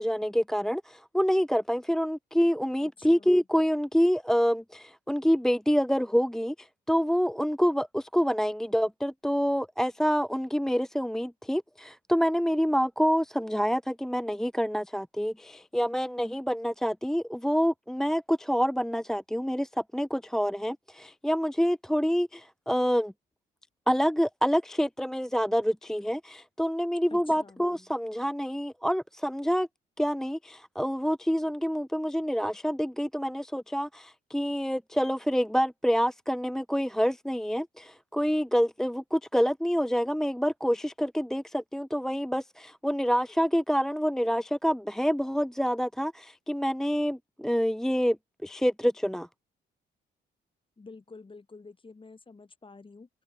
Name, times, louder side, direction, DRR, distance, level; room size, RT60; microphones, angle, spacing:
voice 1, 0.0-23.1 23.9-29.7 30.0-48.2 48.4-49.3, equal, ahead, 1.0 m, -27 dB
voice 2, 2.8-3.4 27.1-27.7 50.8-53.1, left 3 dB, 25° left, 5.9 m, -49 dB
cardioid pair, 90°, 20 cm